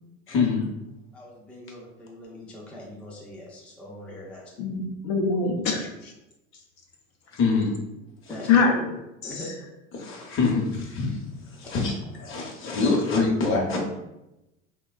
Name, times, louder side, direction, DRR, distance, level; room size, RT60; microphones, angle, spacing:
voice 1, 0.3-0.7 7.3-7.7 8.2-8.4 9.9-13.8, left 4 dB, 35° left, -1 dB, 0.9 m, -25 dB
voice 2, 1.1-4.6 8.3-8.7 9.2-9.5 11.6-11.7, left 1 dB, 5° left, -3 dB, 0.5 m, -42 dB
voice 3, 4.6-6.1 8.5-8.8 9.2-9.4, left 4 dB, 60° left, -1 dB, 0.6 m, -23 dB
3.2 x 2.2 x 2.3 m, 0.93 s
hypercardioid pair, 80°, 36 cm